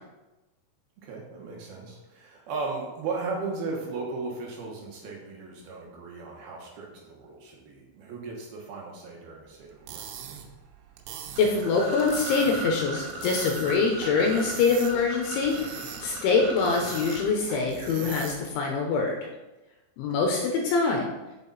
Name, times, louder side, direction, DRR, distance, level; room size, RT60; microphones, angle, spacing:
voice 1, 1.0-10.4 20.0-20.1, right 4 dB, 65° right, -2 dB, 2.5 m, -36 dB
sound 1, 9.7-18.6, right 8 dB, 90° right, 3.7 m, -42 dB
sound 2, 11.3-18.1, right 1 dB, 45° right, 2.8 m, -38 dB
voice 2, 11.4-19.2 20.0-21.1, left 4 dB, 80° left, 1 dB, 3.1 m, -24 dB
8.6 x 7.4 x 4.1 m, 1.1 s
omnidirectional pair, 6.0 m